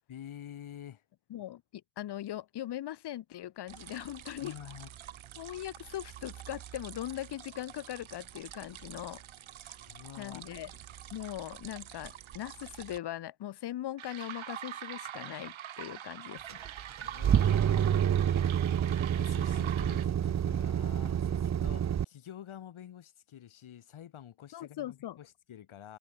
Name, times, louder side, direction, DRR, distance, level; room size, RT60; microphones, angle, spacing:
voice 1, 0.1-1.0 4.4-4.9 9.9-10.4 17.0-18.0 19.2-26.0, left 10 dB, 85° left, 4.6 m, -48 dB
voice 2, 1.3-4.6 5.4-9.2 10.2-10.7 11.1-16.6 24.5-25.2, left 13 dB, 55° left, 0.6 m, -40 dB
sound 1, 3.7-13.0 14.0-20.1, right 11 dB, 80° right, 1.8 m, -46 dB
sound 2, 16.5-22.0, right 9 dB, 35° right, 0.5 m, -28 dB
wide cardioid pair, 125°, 47 cm